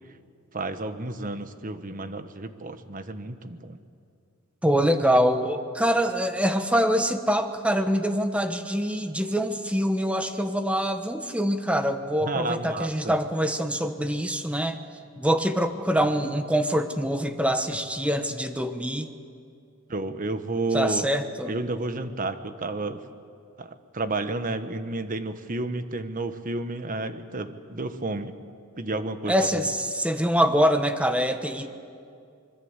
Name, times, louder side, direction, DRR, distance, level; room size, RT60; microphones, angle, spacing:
voice 1, 0.5-3.8 12.2-13.2 19.9-21.1 21.5-23.0 23.6-28.3 28.8-29.7, right 2 dB, 40° right, 9 dB, 1.2 m, -31 dB
voice 2, 4.6-14.8 15.2-19.1 20.7-21.5 29.3-31.7, equal, 5° right, 7 dB, 1.1 m, -24 dB
25.5 x 22.0 x 8.1 m, 2.4 s
head